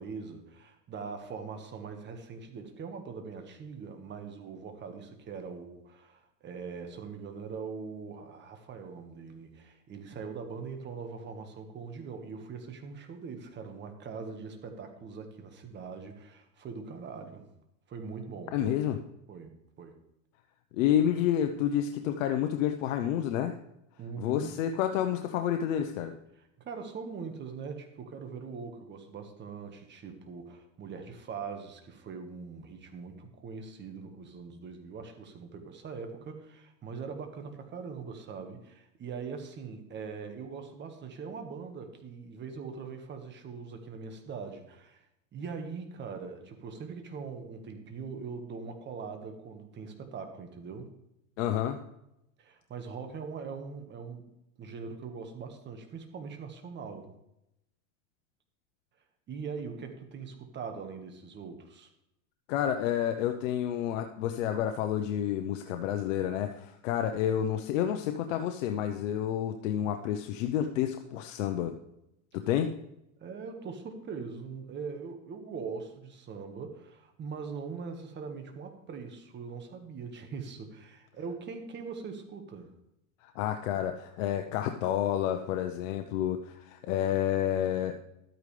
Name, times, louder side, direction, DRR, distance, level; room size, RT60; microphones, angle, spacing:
voice 1, 0.0-17.5 17.9-18.6 19.3-20.0 24.0-24.5 26.6-45.0 45.3-50.9 52.4-54.3 54.6-57.1 59.3-61.9 73.2-82.7, right 5 dB, 30° right, 5 dB, 1.6 m, -42 dB
voice 2, 18.5-19.0 20.7-23.5 24.2-26.1 51.4-51.8 62.5-71.7 72.3-72.7 83.2-87.9, left 10 dB, 75° left, 6 dB, 0.9 m, -29 dB
12.5 x 9.0 x 3.3 m, 0.82 s
supercardioid pair, 135°, 39 cm